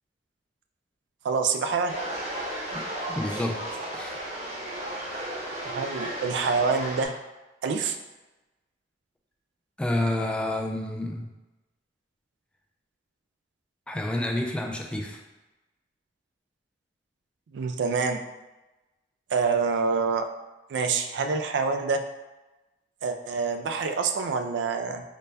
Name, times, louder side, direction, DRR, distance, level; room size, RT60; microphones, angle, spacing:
voice 1, 1.2-1.9 5.6-7.1 7.6-8.0 17.5-18.2 19.3-20.3 20.7-22.0 23.0-25.0, right 5 dB, 80° right, 6 dB, 0.3 m, -26 dB
sound 1, 1.9-7.1, right 1 dB, 40° right, 0.8 m, -34 dB
voice 2, 3.1-3.6 3.9-4.2 9.8-11.3 13.9-15.2, left 1 dB, 5° left, 1 dB, 0.3 m, -29 dB
4.0 x 2.2 x 3.3 m, 1.1 s
head